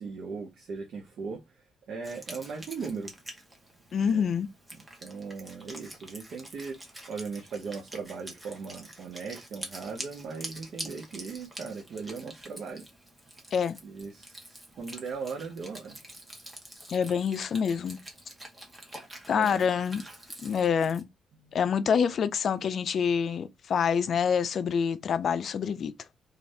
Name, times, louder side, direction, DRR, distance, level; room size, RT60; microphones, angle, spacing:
voice 1, 0.0-1.4 1.9-3.1 4.1-4.3 5.0-6.8 7.1-12.9 13.8-16.0 19.3-19.7 21.3-21.6, right 5 dB, 65° right, 0.6 m, -38 dB
Wind instrument woodwind instrument, 2.0-21.0, right 1 dB, 15° right, 0.9 m, -46 dB
voice 2, 3.9-4.5 13.5-13.8 16.9-18.0 19.3-20.0 20.4-21.1 21.5-25.9, left 7 dB, 55° left, 0.3 m, -26 dB
2.5 x 2.4 x 3.2 m
cardioid pair, 90°, 0 cm